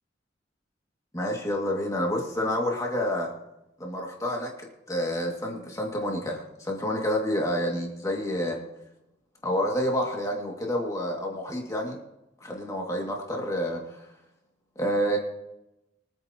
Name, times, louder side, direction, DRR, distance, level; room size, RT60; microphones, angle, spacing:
voice 1, 1.1-3.3 3.8-8.6 9.4-12.0 12.4-14.1 14.8-15.2, equal, 15° left, -1 dB, 2.3 m, -29 dB
24.0 x 9.2 x 3.0 m, 0.92 s
head